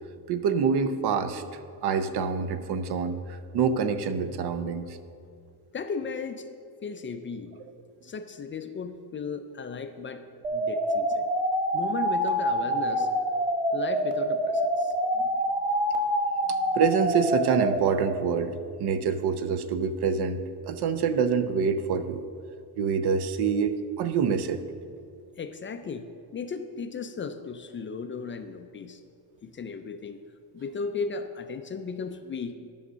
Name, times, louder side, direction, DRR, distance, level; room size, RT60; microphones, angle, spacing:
voice 1, 0.3-1.4 1.8-5.0 12.9-13.1 16.5-22.2 22.8-24.6, right 6 dB, 70° right, 11 dB, 0.7 m, -26 dB
voice 2, 5.7-6.5 6.8-7.5 8.0-10.2 10.5-11.3 11.7-13.1 13.7-14.9 25.4-29.0 29.4-30.2 30.5-32.5, left 5 dB, 30° left, 8 dB, 0.4 m, -36 dB
sound 1, 10.4-17.8, equal, 20° right, 1.5 m, -26 dB
10.5 x 6.4 x 6.2 m, 2.4 s
cardioid pair, 165°, 41 cm